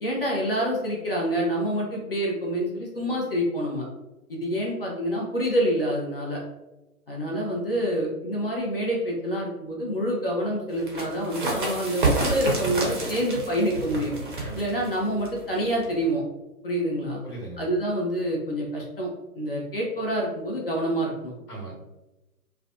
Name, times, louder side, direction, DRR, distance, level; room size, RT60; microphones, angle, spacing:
voice 1, 0.0-3.8 4.3-6.4 7.1-14.1 14.6-16.2 16.6-17.2 17.6-21.3, equal, 40° left, -3 dB, 0.5 m, -27 dB
sound 1, 10.7-16.1, right 2 dB, 35° right, 0.5 m, -29 dB
voice 2, 14.4-14.8 17.2-17.6 21.5-21.7, right 2 dB, 80° left, -3 dB, 1.2 m, -38 dB
2.4 x 2.1 x 2.5 m, 1.0 s
figure-of-eight pair, 130°, 45 cm